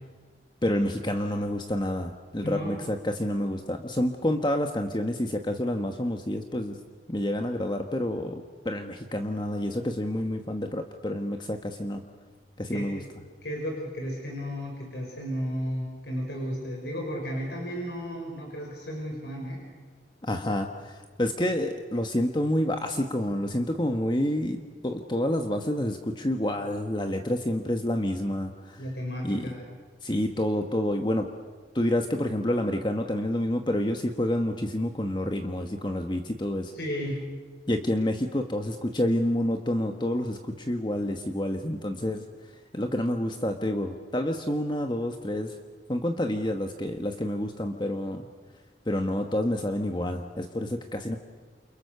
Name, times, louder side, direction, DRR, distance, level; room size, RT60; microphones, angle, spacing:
voice 1, 0.6-6.8 7.1-12.0 12.6-13.0 20.2-28.8 29.2-29.4 30.0-31.3 31.7-36.7 37.7-45.5 45.9-48.3 48.8-51.2, left 1 dB, 25° left, 5 dB, 1.3 m, -28 dB
voice 2, 2.4-2.8 12.7-12.9 13.4-19.6 28.8-29.6 36.7-37.2, equal, 75° left, -1 dB, 5.9 m, -33 dB
29.5 x 29.0 x 6.8 m, 1.5 s
head